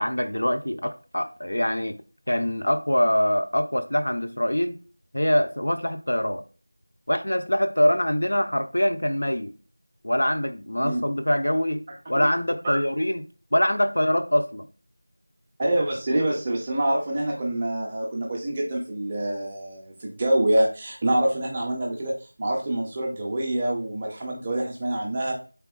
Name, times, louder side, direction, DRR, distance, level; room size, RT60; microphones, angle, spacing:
voice 1, 0.0-2.0 2.3-4.8 5.1-6.4 7.1-9.5 10.0-11.8 12.1-13.2 13.5-14.7, equal, 75° left, 0.5 m, -24 dB
voice 2, 15.6-25.3, right 1 dB, 15° right, 0.4 m, -26 dB
3.6 x 3.4 x 2.2 m
figure-of-eight pair, 175°, 0 cm